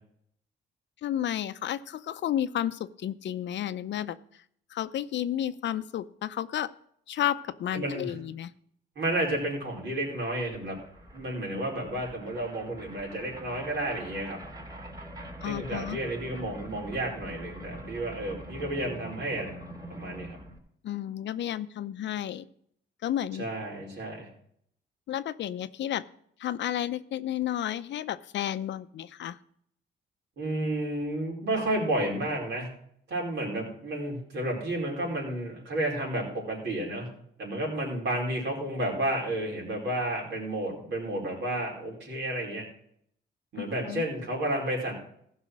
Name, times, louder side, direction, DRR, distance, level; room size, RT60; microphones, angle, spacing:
voice 1, 1.0-4.2 4.7-6.7 7.1-8.5 15.4-16.0 20.8-22.5 23.0-23.4 25.1-26.0 26.4-29.4 43.6-44.0, left 11 dB, 65° left, 13 dB, 0.6 m, -32 dB
voice 2, 7.7-8.1 8.9-10.8 11.1-14.4 15.4-19.5 19.9-20.4 23.4-24.3 30.4-32.7 33.1-37.1 37.4-42.7 43.5-44.9, right 1 dB, 65° right, -1 dB, 4.8 m, -31 dB
sound 1, 9.7-20.6, right 1 dB, 20° right, 3.3 m, -44 dB
15.0 x 5.6 x 6.3 m, 0.67 s
cardioid pair, 90°, 20 cm